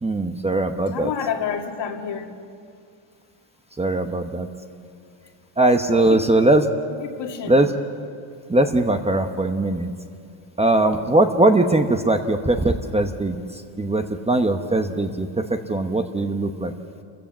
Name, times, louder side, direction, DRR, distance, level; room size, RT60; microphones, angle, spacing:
voice 1, 0.0-1.1 3.8-4.5 5.6-6.7 7.5-7.7 8.5-9.9 10.6-13.4 13.8-16.7, right 2 dB, 15° right, 6 dB, 0.9 m, -20 dB
voice 2, 0.9-2.3 5.9-6.2 7.0-7.6, left 7 dB, 60° left, 3 dB, 2.3 m, -29 dB
28.0 x 15.0 x 7.3 m, 2.3 s
cardioid pair, 140°, 47 cm